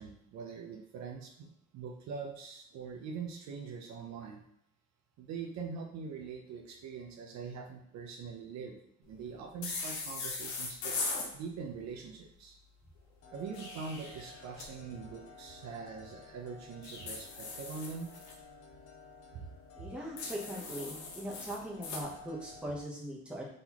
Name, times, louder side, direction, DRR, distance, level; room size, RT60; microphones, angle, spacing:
voice 1, 0.0-4.4 5.2-8.8 9.1-11.0 11.3-12.6 13.3-18.1 19.3-19.4 19.8-19.9, right 5 dB, 65° right, 2 dB, 0.8 m, -43 dB
sound 1, 9.6-11.3 13.3-14.7 16.8-18.3 20.2-22.0, left 4 dB, 75° left, 1.0 m, -39 dB
sound 2, 13.2-22.8, left 3 dB, 55° left, 0.8 m, -54 dB
voice 2, 19.7-23.5, right 1 dB, 5° right, -4 dB, 1.0 m, -40 dB
3.9 x 3.8 x 3.0 m, 0.73 s
cardioid pair, 135°, 29 cm